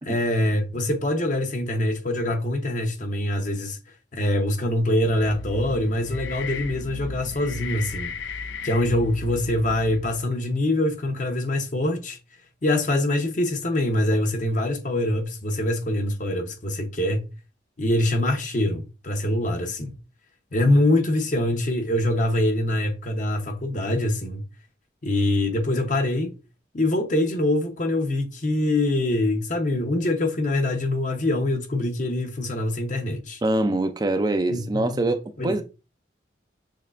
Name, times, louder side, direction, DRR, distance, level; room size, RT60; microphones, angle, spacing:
voice 1, 0.1-3.8 4.1-8.1 8.6-12.2 12.6-17.3 17.8-19.9 20.5-24.4 25.0-26.3 26.7-33.4 34.5-35.1 35.4-35.6, left 1 dB, 40° left, 0.8 m, -24 dB
sound 1, 5.0-10.3, left 4 dB, 70° left, 0.4 m, -35 dB
voice 2, 33.4-35.6, right 2 dB, 20° right, 0.4 m, -24 dB
6.3 x 3.2 x 2.5 m
head